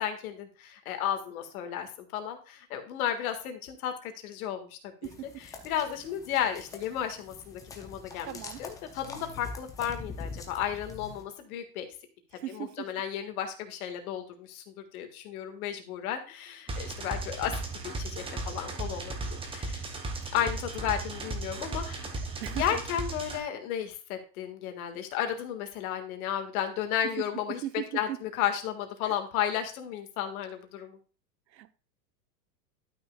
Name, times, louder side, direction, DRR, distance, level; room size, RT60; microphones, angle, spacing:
voice 1, 0.0-11.9 12.5-19.8 20.3-22.1 22.6-27.6 27.9-31.0, left 10 dB, 55° left, 1.8 m, -33 dB
sound 1, 5.0-11.2, left 4 dB, 5° left, 0.4 m, -44 dB
voice 2, 8.2-8.6 12.4-12.9 22.4-22.8 27.5-28.2 29.0-29.1 31.5-31.7, right 13 dB, 85° right, 0.9 m, -38 dB
sound 2, 16.7-23.4, right 2 dB, 10° right, 0.9 m, -36 dB
12.0 x 6.0 x 2.3 m
supercardioid pair, 140°, 50 cm